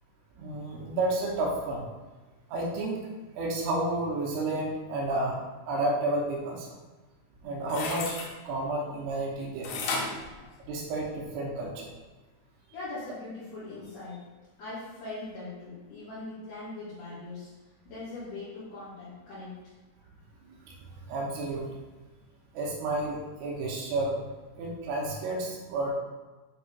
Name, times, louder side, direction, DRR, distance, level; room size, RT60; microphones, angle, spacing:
voice 1, 0.4-1.8 2.5-3.0 3.4-5.4 5.7-6.8 7.4-8.2 8.5-10.0 10.7-11.9 20.5-20.8 21.1-21.7 22.5-24.2 24.6-25.9, right 2 dB, 90° right, -3 dB, 3.5 m, -31 dB
sound 1, 7.4-8.3 9.6-11.2 11.7-11.8, left 3 dB, 90° left, 3.3 m, -34 dB
voice 2, 12.7-14.3 14.6-17.5 17.9-19.7, left 2 dB, 60° left, -12 dB, 3.6 m, -41 dB
9.1 x 5.3 x 2.4 m, 1.2 s
omnidirectional pair, 5.6 m